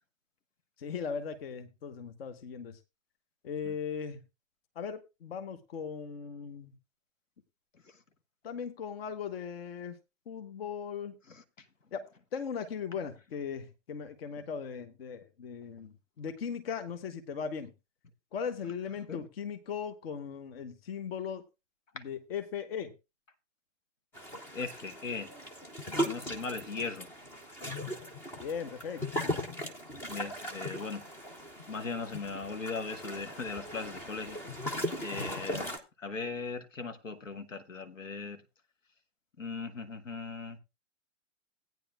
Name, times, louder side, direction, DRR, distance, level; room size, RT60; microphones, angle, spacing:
voice 1, 0.8-2.8 3.4-4.2 4.8-6.7 8.4-10.0 10.3-11.2 11.9-12.1 12.3-17.7 18.3-21.4 21.9-22.9 28.4-29.0 35.1-35.3, left 6 dB, 50° left, 1.1 m, -38 dB
sound 1, 24.1-35.8, equal, 5° left, 0.5 m, -38 dB
voice 2, 24.5-25.3 25.9-27.1 30.1-31.0 31.7-35.7 36.0-38.4 39.4-40.6, left 4 dB, 75° left, 1.3 m, -39 dB
17.0 x 9.3 x 2.3 m
figure-of-eight pair, 120°, 39 cm